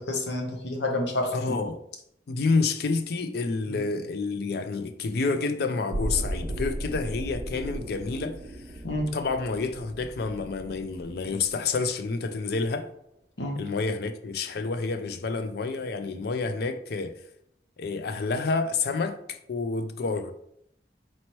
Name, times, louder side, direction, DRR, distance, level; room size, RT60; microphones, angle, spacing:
voice 1, 0.0-1.6 3.7-3.8 8.8-9.1 13.4-13.6, left 1 dB, 80° left, 0.8 m, -29 dB
voice 2, 1.3-1.8 2.3-8.3 9.1-12.9 13.6-17.1 17.8-20.3, left 4 dB, 60° left, 0.4 m, -29 dB
sound 1, 5.9-11.9 12.2-12.3, right 1 dB, 30° right, 0.5 m, -36 dB
4.2 x 3.0 x 3.0 m
head